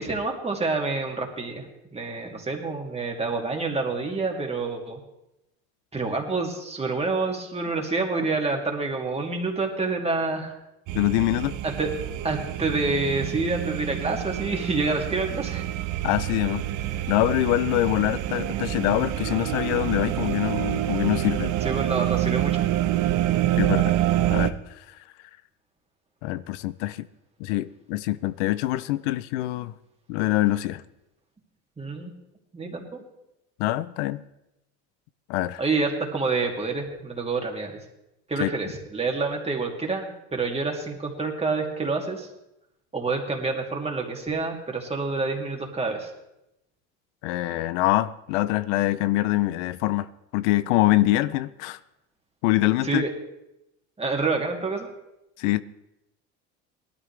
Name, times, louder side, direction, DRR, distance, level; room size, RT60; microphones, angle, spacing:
voice 1, 0.0-1.6 1.9-5.0 5.9-10.5 11.6-11.9 12.2-15.7 21.6-22.6 31.8-32.1 32.5-33.0 35.6-37.8 38.3-42.3 42.9-46.1 52.8-53.1 54.0-54.9, right 3 dB, 15° right, 2.7 m, -27 dB
voice 2, 10.9-11.6 16.0-16.6 17.1-21.6 23.6-23.9 24.3-24.5 26.2-27.1 27.4-29.7 30.1-30.8 33.6-34.2 35.3-35.6 38.4-38.5 47.2-50.1 50.3-51.8 52.4-53.0 55.4-55.6, left 16 dB, 80° left, 0.6 m, -24 dB
sound 1, 10.9-24.5, right 13 dB, 60° right, 0.9 m, -27 dB
18.5 x 13.0 x 3.4 m
supercardioid pair, 100°, 35 cm